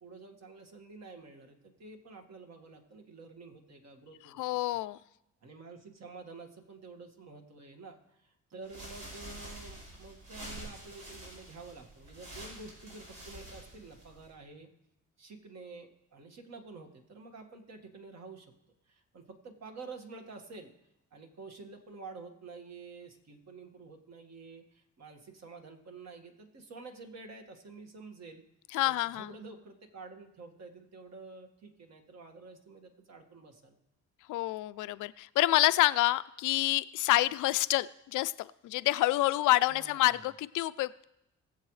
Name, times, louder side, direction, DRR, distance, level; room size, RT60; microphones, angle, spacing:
voice 1, 0.0-4.8 5.4-14.7 15.2-18.5 18.9-20.7 21.1-28.4 28.8-33.8 39.7-40.2, right 3 dB, 60° right, 4 dB, 1.8 m, -49 dB
voice 2, 4.4-5.0 28.7-29.3 34.3-41.0, left 17 dB, 85° left, 15 dB, 0.5 m, -28 dB
sound 1, 8.6-14.3, right 1 dB, 85° right, 5.0 m, -47 dB
20.5 x 7.7 x 3.2 m, 0.85 s
cardioid pair, 90°, 30 cm